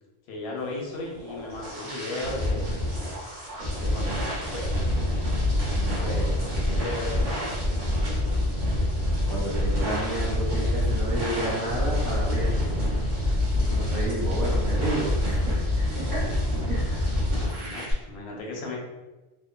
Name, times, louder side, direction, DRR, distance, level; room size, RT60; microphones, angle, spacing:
voice 1, 0.3-2.8 3.8-4.7 6.0-7.3 17.1-18.8, left 2 dB, 85° left, -1 dB, 0.9 m, -36 dB
sound 1, 1.0-17.9, left 1 dB, 50° right, 0.9 m, -26 dB
Drum, 5.7-11.8, right 1 dB, 15° left, 0.4 m, -49 dB
voice 2, 5.7-6.3 9.3-12.7 13.6-16.3 16.7-17.2, right 1 dB, 75° right, -11 dB, 1.3 m, -32 dB
2.8 x 2.1 x 2.3 m, 1.1 s
omnidirectional pair, 1.1 m